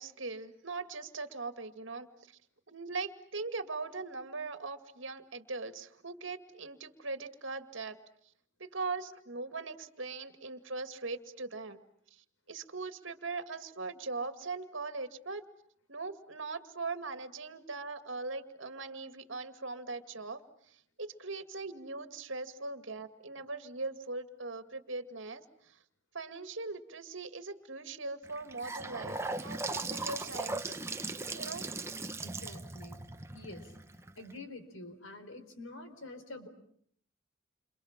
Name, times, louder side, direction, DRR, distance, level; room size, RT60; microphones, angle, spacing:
voice 1, 0.0-2.4 2.7-8.0 8.6-11.8 12.1-15.4 15.9-25.8 26.1-30.8 31.3-31.7, right 3 dB, 70° right, 9 dB, 2.2 m, -40 dB
Gurgling / Sink (filling or washing) / Bathtub (filling or washing), 28.2-34.3, right 3 dB, 15° right, 1.1 m, -38 dB
voice 2, 32.2-33.0 33.3-33.7 34.1-36.5, left 2 dB, 80° left, 9 dB, 4.5 m, -47 dB
29.5 x 27.0 x 7.4 m, 0.67 s
head